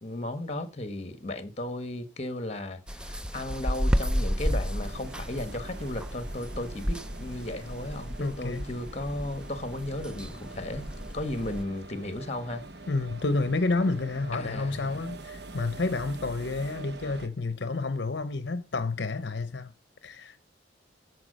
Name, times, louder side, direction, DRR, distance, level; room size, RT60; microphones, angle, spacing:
voice 1, 0.0-12.6 14.3-15.0, left 1 dB, 35° left, 1.3 m, -35 dB
sound 1, 2.9-11.6, equal, 5° right, 0.4 m, -32 dB
sound 2, 4.8-17.3, right 2 dB, 60° right, 1.0 m, -45 dB
voice 2, 8.2-8.7 12.9-19.7 20.0-20.4, left 3 dB, 65° left, 0.7 m, -30 dB
13.5 x 4.7 x 6.4 m
head